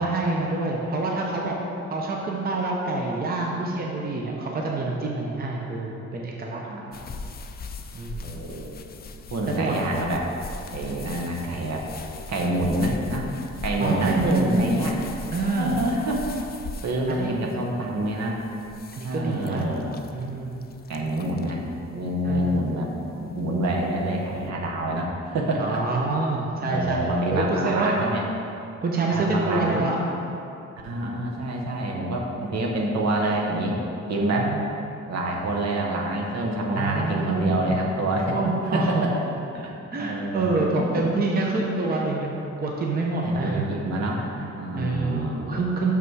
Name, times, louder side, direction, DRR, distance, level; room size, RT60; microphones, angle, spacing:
voice 1, 0.0-1.6 1.9-6.6 7.9-8.4 9.5-9.8 13.8-14.7 15.3-15.8 17.1-17.3 18.9-19.7 20.1-20.6 22.2-22.5 25.5-28.0 28.8-30.0 34.0-34.6 36.7-37.8 38.3-39.1 39.9-43.7 44.4-44.5 44.8-45.9, right 3 dB, 30° right, -1 dB, 0.7 m, -26 dB
voice 2, 6.6-7.0 8.2-8.8 9.3-10.3 10.7-11.8 12.3-13.3 13.6-15.0 15.5-16.3 16.8-18.3 19.0-19.9 20.9-21.6 21.9-25.8 26.6-28.2 29.1-29.8 30.8-33.8 34.1-34.5 35.1-38.4 38.6-39.1 39.5-40.9 43.2-44.2 44.6-45.4, right 1 dB, 65° right, -1 dB, 1.1 m, -27 dB
sound 1, 6.9-24.5, left 3 dB, 35° left, 0.4 m, -41 dB
6.2 x 5.9 x 4.6 m, 2.7 s
cardioid pair, 145°, 29 cm